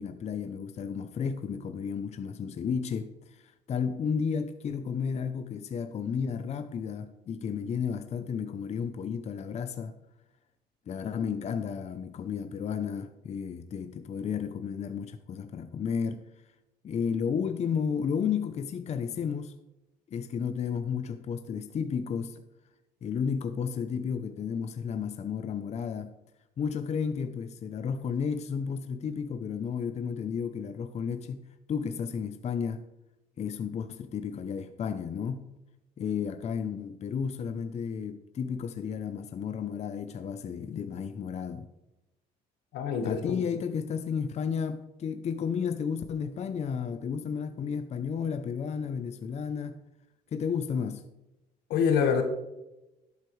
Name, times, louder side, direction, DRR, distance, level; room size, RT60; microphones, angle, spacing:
voice 1, 0.0-9.9 10.9-16.2 16.8-19.5 20.1-22.4 23.0-26.1 26.6-32.8 33.4-35.5 36.0-41.7 43.0-49.8 50.3-51.0, left 6 dB, 40° left, 0.7 m, -32 dB
voice 2, 42.7-43.4 51.7-52.2, left 6 dB, 85° left, 1.6 m, -25 dB
11.5 x 8.1 x 3.2 m
cardioid pair, 110°, 17 cm